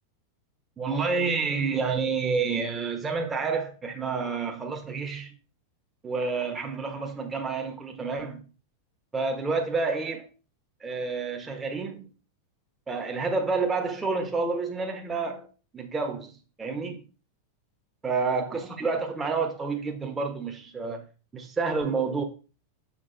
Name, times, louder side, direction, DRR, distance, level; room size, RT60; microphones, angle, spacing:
voice 1, 0.8-5.3 6.0-8.4 9.1-10.3 10.8-12.1 12.9-15.5 15.7-17.0 18.0-21.0 21.3-22.2, right 4 dB, 15° right, 1.3 m, -29 dB
7.4 x 6.0 x 4.0 m
figure-of-eight pair, 90°, 0 cm